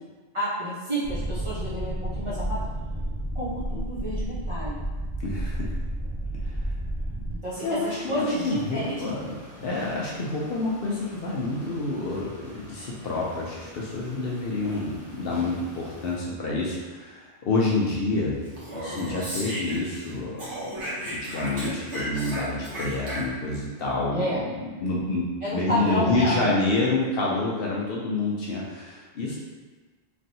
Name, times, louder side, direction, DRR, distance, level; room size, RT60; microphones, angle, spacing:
voice 1, 0.3-2.6 3.3-4.8 7.4-9.0 24.1-24.4 25.4-26.6, equal, 30° right, -10 dB, 0.8 m, -30 dB
sound 1, 1.0-7.4, right 1 dB, 35° left, 1.1 m, -31 dB
voice 2, 5.2-5.7 6.4-6.5 7.6-18.5 18.7-20.4 21.0-25.2 25.5-29.4, left 2 dB, 65° left, -4 dB, 0.7 m, -28 dB
sound 2, 7.5-16.2, equal, 50° right, 1.1 m, -46 dB
Speech, 18.5-20.1 20.4-23.6, right 1 dB, 85° right, 1.3 m, -34 dB
3.1 x 2.6 x 2.6 m, 1.3 s
omnidirectional pair, 1.1 m